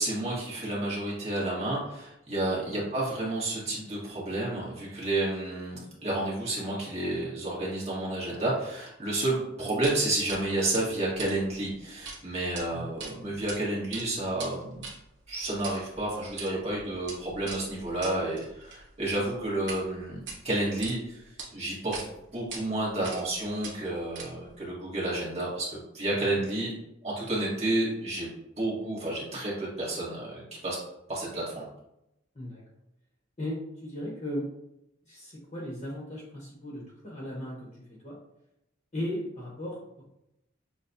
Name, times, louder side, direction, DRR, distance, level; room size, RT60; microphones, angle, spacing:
voice 1, 0.0-14.8 15.3-22.0 22.3-26.7 27.0-28.3 28.6-30.8 31.1-31.6, right 1 dB, 30° right, -5 dB, 1.5 m, -31 dB
sound 1, 9.8-10.0 10.3-10.4 10.7-12.2 12.4-12.6 13.0-13.6 13.8-19.8 20.2-20.9 21.4-21.5 21.9-22.1 22.5-22.6 23.0-23.3 23.6-24.5, right 4 dB, 60° right, 1.1 m, -41 dB
voice 2, 33.4-34.5 35.1-38.2 38.9-40.0, equal, 30° left, -4 dB, 1.0 m, -37 dB
6.8 x 2.3 x 2.7 m, 0.84 s
head